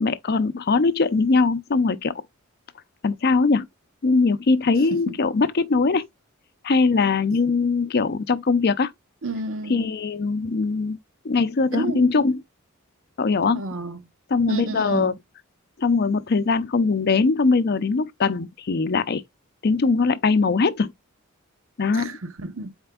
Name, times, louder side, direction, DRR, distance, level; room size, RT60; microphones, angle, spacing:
voice 1, 0.0-2.1 3.0-3.7 4.0-6.1 6.6-8.9 9.7-11.0 11.2-12.4 13.2-13.6 14.3-15.1 15.8-19.2 19.6-20.9 21.8-22.1, left 4 dB, 50° left, 0.5 m, -21 dB
voice 2, 9.2-9.9 11.7-12.0 13.5-14.1 14.5-15.1 21.9-22.7, right 2 dB, 65° right, 0.8 m, -30 dB
4.3 x 3.3 x 3.6 m
head